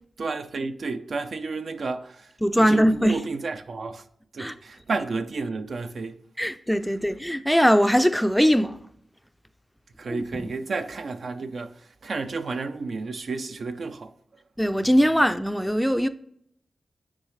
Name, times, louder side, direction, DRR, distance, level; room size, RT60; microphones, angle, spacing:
voice 1, 0.2-2.3 2.6-4.0 4.3-6.2 10.0-14.1, right 3 dB, 70° right, 0.5 m, -31 dB
voice 2, 2.4-3.2 4.4-4.5 6.4-8.8 10.1-10.2 10.4-10.5 14.6-16.1, equal, ahead, 0.4 m, -21 dB
9.6 x 3.9 x 3.1 m
cardioid pair, 65°, 0 cm